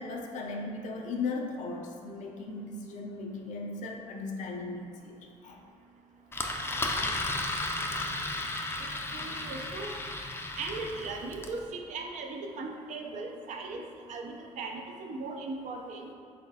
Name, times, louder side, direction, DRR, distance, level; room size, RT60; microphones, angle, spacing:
voice 1, 0.0-5.6 8.3-8.5, left 3 dB, 70° left, 1 dB, 0.6 m, -37 dB
Engine, 6.3-11.6, left 2 dB, 20° left, 0.4 m, -34 dB
voice 2, 8.8-9.9 10.6-13.8 14.1-16.1, right 3 dB, 70° right, 2 dB, 0.5 m, -38 dB
4.1 x 4.0 x 2.8 m, 2.3 s
cardioid pair, 95°, 13 cm